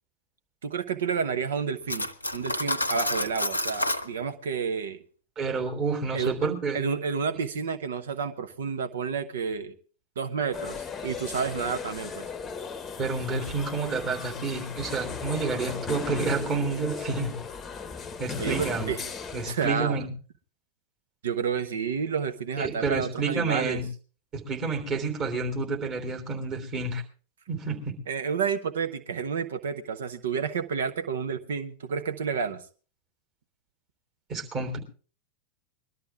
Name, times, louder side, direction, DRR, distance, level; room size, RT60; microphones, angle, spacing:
voice 1, 0.6-5.0 6.1-6.3 6.7-9.7 10.2-12.3 18.4-19.0 19.4-20.1 21.2-23.8 28.1-32.6, right 6 dB, 60° right, 0.9 m, -30 dB
Cutlery silverware, 1.9-4.1, left 1 dB, 85° left, 0.7 m, -29 dB
voice 2, 5.4-6.8 13.0-17.4 18.2-18.9 19.3-20.1 22.6-23.8 24.3-27.0 27.5-27.9 34.3-34.8, right 4 dB, 30° right, 3.4 m, -29 dB
sound 1, 10.5-19.5, left 5 dB, 20° left, 0.9 m, -37 dB
21.5 x 12.5 x 3.5 m
figure-of-eight pair, 90°, 0 cm